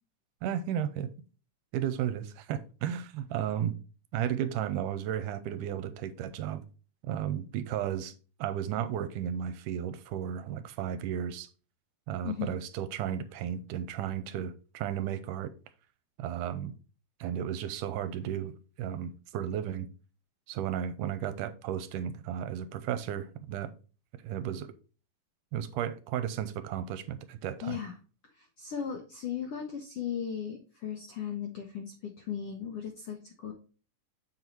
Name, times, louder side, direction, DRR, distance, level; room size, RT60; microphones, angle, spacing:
voice 1, 0.4-1.1 1.7-3.7 4.1-6.6 7.1-8.1 8.4-11.5 12.1-15.5 16.2-16.7 17.2-18.5 18.8-19.9 20.5-23.7 24.2-24.7 25.5-27.8, right 10 dB, 80° right, 2.1 m, -34 dB
voice 2, 12.2-12.6 27.6-27.9 28.3-33.5, left 8 dB, 75° left, 1.3 m, -37 dB
7.2 x 4.1 x 4.4 m
omnidirectional pair, 3.8 m